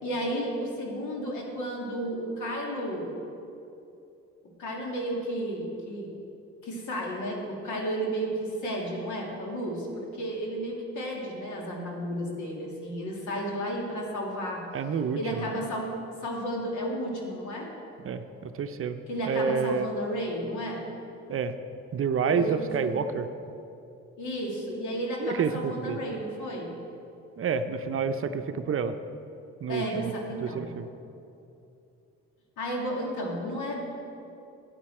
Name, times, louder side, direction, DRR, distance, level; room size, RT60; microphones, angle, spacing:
voice 1, 0.0-3.2 4.6-6.1 6.6-14.6 15.1-15.9 16.2-17.7 19.1-20.9 22.3-22.9 24.2-26.8 29.7-30.7 32.6-33.9, equal, 75° left, -1 dB, 2.1 m, -32 dB
voice 2, 14.7-15.5 18.0-19.0 19.3-19.9 21.3-21.5 21.9-23.3 25.2-26.0 27.4-29.0 29.6-30.1 30.4-30.9, right 6 dB, 45° right, 9 dB, 0.6 m, -29 dB
12.0 x 9.0 x 4.4 m, 2.7 s
cardioid pair, 90°, 30 cm